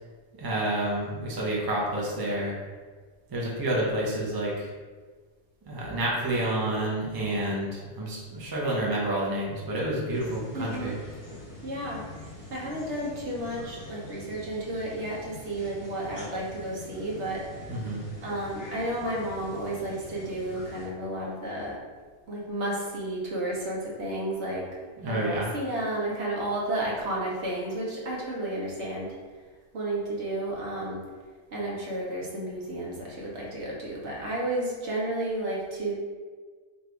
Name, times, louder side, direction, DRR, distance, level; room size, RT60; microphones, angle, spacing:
voice 1, 0.4-2.5 3.3-4.7 5.7-11.0 17.7-18.0 25.0-25.5, right 1 dB, 25° right, -5 dB, 0.5 m, -29 dB
sound 1, 10.1-20.9, left 2 dB, 15° left, 1.4 m, -44 dB
voice 2, 10.5-10.9 11.6-12.0 12.5-17.4 18.2-21.8 22.3-24.6 25.0-29.1 29.7-31.0 31.5-35.9, right 1 dB, 55° right, -4 dB, 1.0 m, -32 dB
3.3 x 2.6 x 4.5 m, 1.5 s
omnidirectional pair, 1.6 m